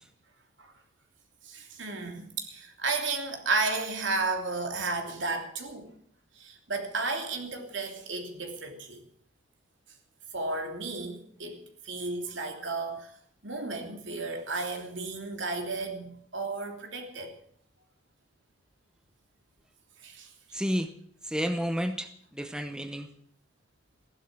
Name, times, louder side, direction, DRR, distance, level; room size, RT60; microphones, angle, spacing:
voice 1, 1.4-5.9 6.4-9.0 10.3-13.1 13.4-17.3 20.0-20.3, right 3 dB, 70° right, 4 dB, 3.0 m, -33 dB
voice 2, 20.5-20.9 21.2-23.1, equal, 5° right, 8 dB, 0.8 m, -31 dB
15.5 x 11.5 x 7.6 m, 0.63 s
head